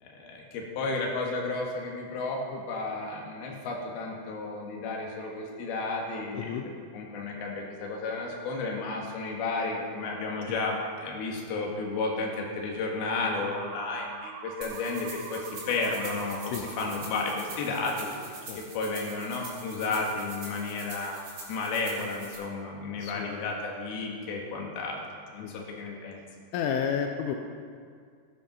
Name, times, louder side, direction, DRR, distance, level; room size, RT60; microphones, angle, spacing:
voice 1, 0.0-6.6 6.9-25.0 25.3-26.2, left 3 dB, 60° left, -1 dB, 3.2 m, -33 dB
voice 2, 6.4-6.7 10.5-10.6 16.5-16.7 18.5-18.6 19.9-20.0 22.9-23.5 25.4-25.6 26.5-27.4, left 7 dB, 85° left, 3 dB, 3.2 m, -32 dB
sound 1, 13.2-18.2, right 8 dB, 90° right, 2.5 m, -45 dB
sound 2, 14.6-22.3, right 2 dB, 40° right, 3.7 m, -45 dB
15.5 x 8.9 x 5.4 m, 2.1 s
omnidirectional pair, 5.6 m